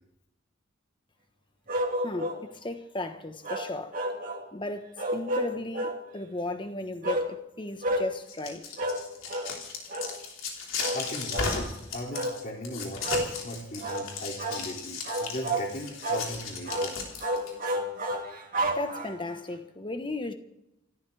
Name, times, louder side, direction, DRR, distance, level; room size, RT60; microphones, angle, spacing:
sound 1, 1.7-2.4 3.4-4.5 5.0-6.0 7.0-7.3 7.8-8.1 8.8-9.0 9.3-9.5 9.9-10.1 10.8-11.0 11.3-11.6 12.1-12.4 13.0-13.3 13.8-14.1 14.4-14.6 15.1-15.7 16.0-16.3 16.7-16.9 17.2-19.3, right 1 dB, 45° right, 2.5 m, -30 dB
voice 1, 2.0-4.0 4.5-8.7 18.7-20.3, left 2 dB, 25° left, 1.4 m, -35 dB
sound 2, 8.1-17.5, left 4 dB, 85° left, 4.3 m, -35 dB
voice 2, 10.9-17.0, left 1 dB, 45° left, 2.9 m, -38 dB
29.0 x 13.5 x 3.5 m
head